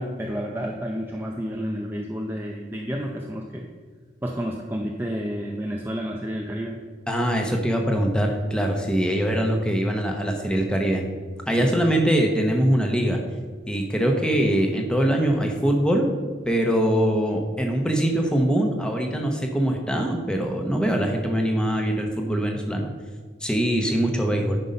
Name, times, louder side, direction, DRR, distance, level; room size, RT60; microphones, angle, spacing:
voice 1, 0.0-3.7 4.2-6.8 11.6-11.9, equal, 10° right, 0 dB, 0.5 m, -30 dB
voice 2, 7.1-11.0 11.5-13.2 13.7-16.1 16.4-22.9 23.4-24.6, right 1 dB, 5° left, 2 dB, 1.0 m, -23 dB
9.6 x 5.5 x 5.3 m, 1.5 s
head